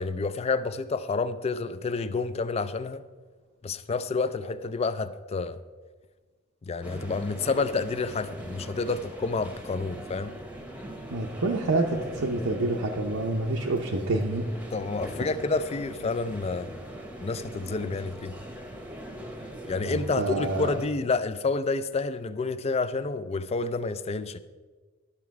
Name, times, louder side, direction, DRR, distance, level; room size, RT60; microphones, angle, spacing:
voice 1, 0.0-3.0 3.6-5.6 6.7-10.3 14.7-16.7 17.2-18.4 19.7-24.4, left 3 dB, 30° left, 13 dB, 0.4 m, -29 dB
sound 1, 6.8-20.9, right 1 dB, 5° right, 0.9 m, -41 dB
voice 2, 11.1-14.4 19.8-20.7, right 2 dB, 85° right, -1 dB, 0.8 m, -27 dB
11.5 x 6.1 x 4.7 m, 1.4 s
head